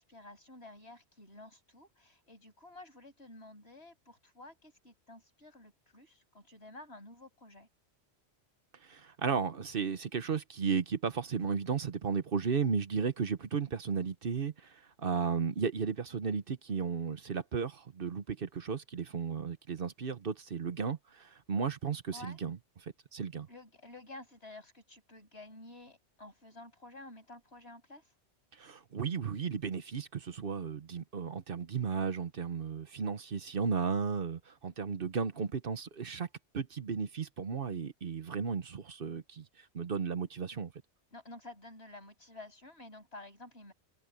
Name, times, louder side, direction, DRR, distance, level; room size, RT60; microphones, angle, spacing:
voice 1, 0.0-7.7 22.1-22.4 23.5-28.1 41.1-43.7, left 2 dB, 70° left, 7.0 m, -51 dB
voice 2, 8.8-22.6 23.1-23.5 28.6-36.3 36.5-39.4 39.7-40.7, right 6 dB, 55° right, 1.1 m, -34 dB
open air
omnidirectional pair, 1.1 m